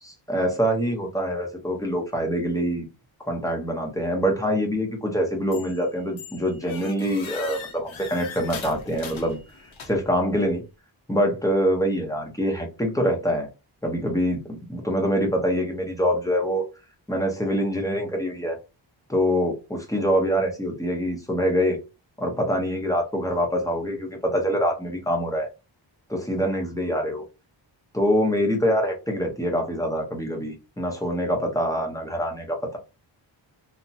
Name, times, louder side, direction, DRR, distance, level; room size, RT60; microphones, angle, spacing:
voice 1, 0.0-2.9 3.3-9.4 9.9-10.6 11.1-13.5 13.8-16.6 17.1-18.6 19.1-21.8 22.2-25.5 26.1-27.2 27.9-32.8, equal, 5° left, 0.8 m, -25 dB
sound 1, 5.5-5.8 6.2-10.2, left 5 dB, 75° left, 0.8 m, -40 dB
2.7 x 2.2 x 2.6 m
wide cardioid pair, 95°, 47 cm